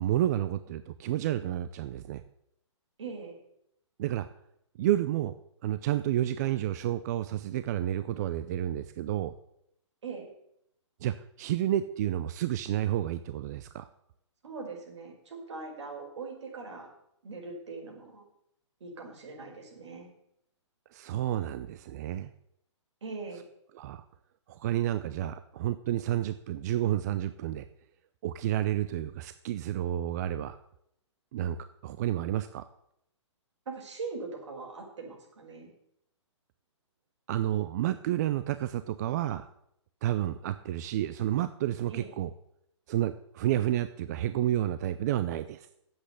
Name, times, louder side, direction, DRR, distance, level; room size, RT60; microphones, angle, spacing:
voice 1, 0.0-2.2 4.0-4.3 4.8-5.3 5.6-9.3 11.0-13.9 20.9-22.3 23.7-24.0 24.5-27.7 28.2-30.6 31.3-31.6 31.8-32.7 37.3-39.5 40.0-42.3 42.9-45.7, right 12 dB, 35° right, 12 dB, 0.5 m, -30 dB
voice 2, 3.0-3.4 10.0-10.3 14.4-16.9 17.2-18.2 18.8-20.1 23.0-23.4 33.7-35.7 41.9-42.1, right 4 dB, 65° right, 0 dB, 5.3 m, -41 dB
10.0 x 8.1 x 8.3 m, 0.77 s
hypercardioid pair, 150°, 16 cm